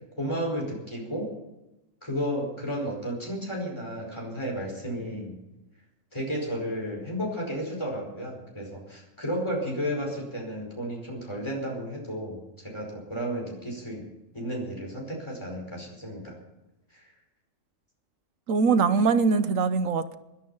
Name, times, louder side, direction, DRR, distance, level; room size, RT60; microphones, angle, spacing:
voice 1, 0.2-1.3 2.0-5.4 6.1-14.1 14.3-16.4 16.9-17.0, equal, 20° left, -1 dB, 5.0 m, -33 dB
voice 2, 18.5-20.1, right 5 dB, 85° right, 12 dB, 1.3 m, -22 dB
21.0 x 12.0 x 5.6 m, 0.98 s
omnidirectional pair, 1.3 m